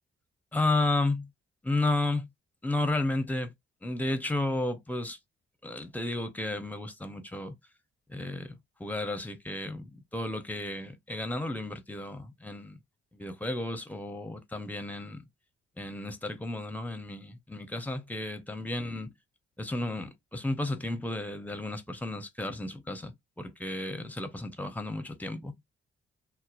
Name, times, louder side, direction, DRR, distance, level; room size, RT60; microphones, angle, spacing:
voice 1, 0.5-1.3 1.6-2.3 2.6-3.5 3.8-5.2 5.6-7.6 8.1-8.5 8.8-12.8 13.1-15.2 15.8-19.1 19.6-25.5, left 2 dB, 5° left, 0.7 m, -32 dB
2.8 x 2.1 x 2.4 m
hypercardioid pair, 40°, 30 cm